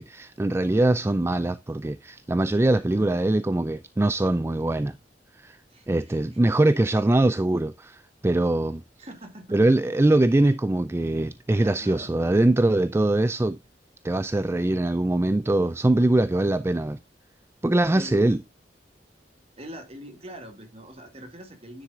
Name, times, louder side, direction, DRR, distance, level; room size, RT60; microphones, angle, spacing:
voice 1, 0.0-5.0 5.4-5.6 5.9-8.8 9.5-13.6 14.0-17.0 17.6-18.4, right 2 dB, 15° right, 0.3 m, -22 dB
voice 2, 2.7-3.1 5.7-6.4 9.0-9.6 11.6-12.1 18.0-18.4 19.6-21.8, equal, 35° right, 2.2 m, -42 dB
10.0 x 7.5 x 2.4 m
head